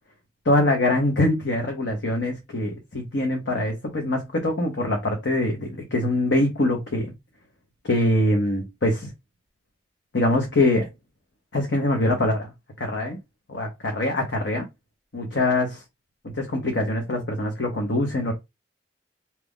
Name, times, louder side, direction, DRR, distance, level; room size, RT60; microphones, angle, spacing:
voice 1, 0.4-7.1 7.8-9.1 10.1-10.9 11.5-12.5 12.8-13.2 13.5-14.7 15.1-15.8 16.3-18.3, left 1 dB, 70° left, 0.9 m, -23 dB
2.8 x 2.4 x 3.6 m
head